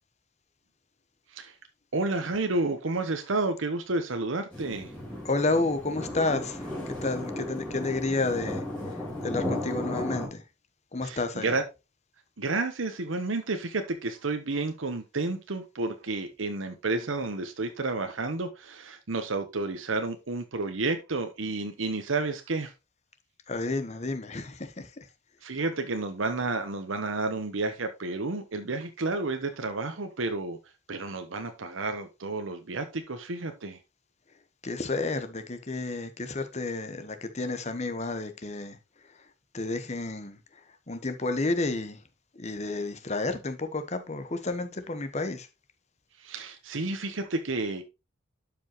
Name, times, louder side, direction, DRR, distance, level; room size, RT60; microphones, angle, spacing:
voice 1, 1.9-4.9 11.0-11.6 12.4-22.7 25.4-30.6 30.9-33.8 46.2-47.8, right 3 dB, 85° right, 1.0 m, -31 dB
sound 1, 4.5-10.3, left 1 dB, 5° left, 3.6 m, -35 dB
voice 2, 5.2-10.4 10.9-11.5 23.5-25.1 34.6-38.8 39.5-40.4 40.9-42.0 42.4-45.5, left 3 dB, 35° left, 1.1 m, -31 dB
11.5 x 5.3 x 2.9 m
head